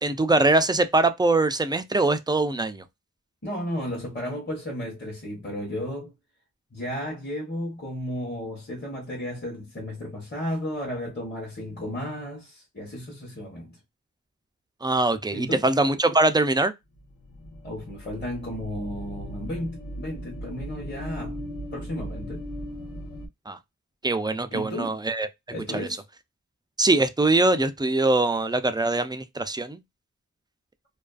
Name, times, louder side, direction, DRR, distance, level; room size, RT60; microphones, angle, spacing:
voice 1, 0.0-2.8 14.8-16.7 23.5-23.6 24.0-25.3 25.7-25.9 26.8-29.8, right 2 dB, 15° right, 0.3 m, -22 dB
voice 2, 3.4-6.1 6.7-13.8 15.3-15.6 17.6-21.4 21.7-22.5 24.5-25.0 25.5-26.0, equal, 30° left, 0.9 m, -33 dB
sound 1, 16.9-23.3, equal, 75° left, 0.9 m, -38 dB
2.4 x 2.3 x 2.3 m
wide cardioid pair, 55°, 35 cm